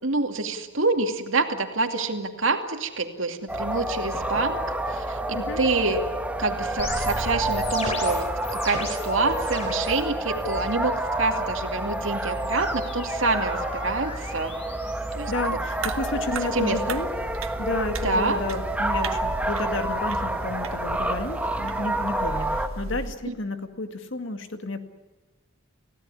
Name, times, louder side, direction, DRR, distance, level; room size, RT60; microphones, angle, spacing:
voice 1, 0.0-4.6 4.9-6.0 6.4-8.3 8.5-14.5 15.1-15.3 16.5-16.8 18.0-18.4 23.3-23.4, right 3 dB, 70° right, 5 dB, 2.5 m, -27 dB
sound 1, 3.5-22.7, right 1 dB, 5° right, 1.3 m, -29 dB
sound 2, 6.8-10.0 10.3-10.9 11.9-16.0, left 2 dB, 30° left, 3.9 m, -37 dB
voice 2, 15.3-17.1 17.6-24.8, left 2 dB, 65° left, 7 dB, 2.1 m, -31 dB
sound 3, 15.8-23.2, right 3 dB, 90° right, 1.5 m, -37 dB
29.5 x 16.5 x 9.8 m, 1.2 s
head